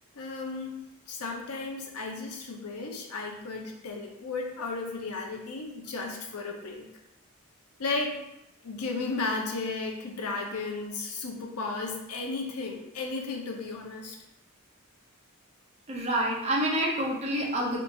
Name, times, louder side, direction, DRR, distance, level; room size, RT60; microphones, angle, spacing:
voice 1, 0.1-6.8 7.8-8.2 8.6-14.2, left 3 dB, 85° left, 1 dB, 0.6 m, -34 dB
voice 2, 15.9-17.8, right 1 dB, 30° right, -3 dB, 0.6 m, -27 dB
2.8 x 2.5 x 3.6 m, 0.87 s
head